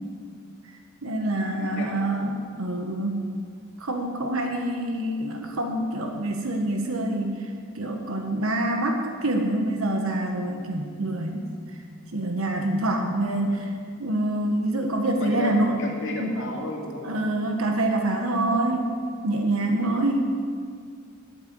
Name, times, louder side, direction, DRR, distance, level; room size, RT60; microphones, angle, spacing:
voice 1, 1.0-3.3 3.8-11.5 12.1-15.9 16.2-16.3 17.0-19.0 19.2-20.4, right 1 dB, 85° right, 3 dB, 1.4 m, -26 dB
voice 2, 1.5-2.0 13.4-13.5 15.2-17.0, left 2 dB, 60° left, -2 dB, 2.7 m, -33 dB
13.0 x 8.6 x 7.8 m, 2.1 s
head